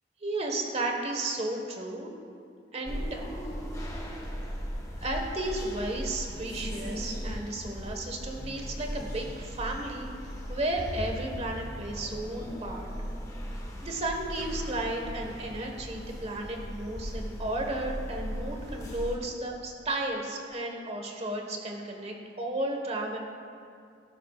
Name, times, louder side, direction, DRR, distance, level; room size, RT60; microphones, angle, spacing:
voice 1, 0.2-2.1 2.7-3.2 5.0-10.1 10.5-12.9 13.8-23.2, right 2 dB, 35° right, 2 dB, 1.5 m, -33 dB
sound 1, 2.8-19.2, equal, 20° left, 1.2 m, -38 dB
17.5 x 11.5 x 2.5 m, 2.4 s
head